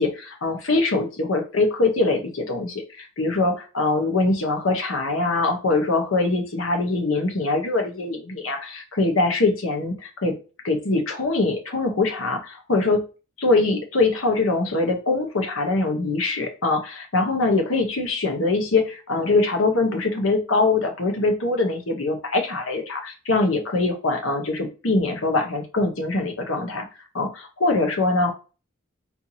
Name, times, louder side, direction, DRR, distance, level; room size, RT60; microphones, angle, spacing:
voice 1, 0.0-10.3 10.6-13.0 13.4-26.8 27.1-28.3, left 3 dB, 85° left, 4 dB, 1.0 m, -23 dB
4.4 x 2.8 x 2.7 m, 0.33 s
head